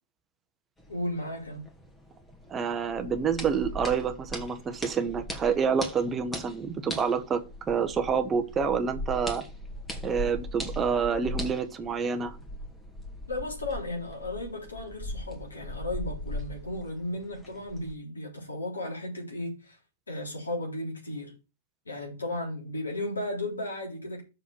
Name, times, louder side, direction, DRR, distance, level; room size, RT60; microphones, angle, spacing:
sound 1, 0.8-17.9, equal, 10° left, 2.1 m, -40 dB
voice 1, 0.9-1.6 13.3-19.8 20.1-21.3 21.9-24.2, left 1 dB, 80° left, 3.8 m, -35 dB
voice 2, 2.5-7.4 7.7-9.4 10.0-12.4, right 6 dB, 20° right, 1.1 m, -28 dB
6.4 x 4.9 x 6.7 m
figure-of-eight pair, 100°, 0 cm